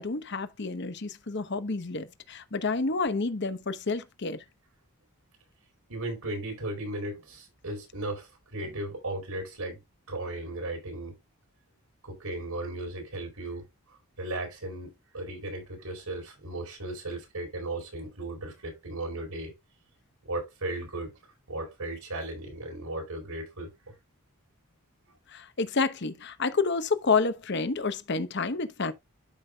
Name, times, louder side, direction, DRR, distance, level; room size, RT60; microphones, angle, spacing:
voice 1, 0.0-4.4 25.3-28.9, left 4 dB, 50° left, 0.9 m, -29 dB
voice 2, 5.9-9.8 10.1-11.2 12.0-19.5 20.2-21.1 21.5-23.7, right 2 dB, 90° right, 4.3 m, -36 dB
12.0 x 5.4 x 2.3 m
head